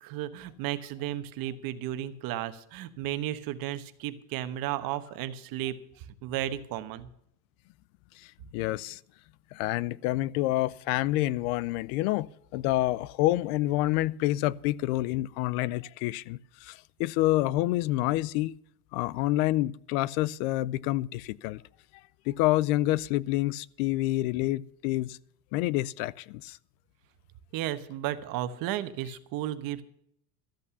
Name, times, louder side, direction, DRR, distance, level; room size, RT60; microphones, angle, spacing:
voice 1, 0.0-7.1 27.5-29.8, right 12 dB, 50° right, 1.1 m, -34 dB
voice 2, 8.2-9.0 9.5-18.6 18.9-21.6 22.3-25.2 25.5-26.6, left 16 dB, 75° left, 0.6 m, -28 dB
13.0 x 8.5 x 7.0 m
cardioid pair, 150°, 45 cm